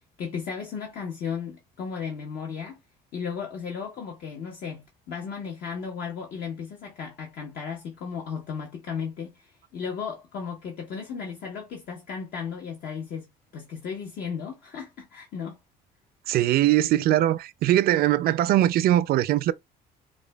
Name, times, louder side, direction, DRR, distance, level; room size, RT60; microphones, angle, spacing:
voice 1, 0.2-2.8 3.1-13.3 13.5-15.6, left 6 dB, 60° left, 0.9 m, -35 dB
voice 2, 16.3-19.5, right 13 dB, 65° right, 0.4 m, -21 dB
5.0 x 2.2 x 2.2 m
cardioid pair, 110°, 17 cm